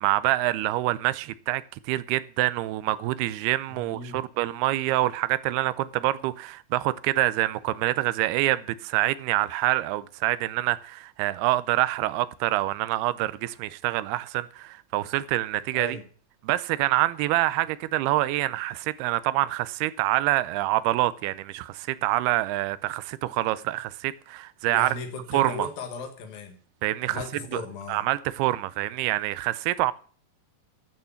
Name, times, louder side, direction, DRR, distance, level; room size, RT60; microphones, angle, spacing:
voice 1, 0.0-16.0 16.4-24.9 25.3-25.7 26.8-27.2 27.5-27.6 27.9-29.9, right 16 dB, 80° right, 2.5 m, -26 dB
voice 2, 3.7-4.2 15.7-16.0 24.7-26.6 27.1-28.0, left 4 dB, 65° left, 3.1 m, -37 dB
12.5 x 6.6 x 7.1 m
omnidirectional pair, 4.8 m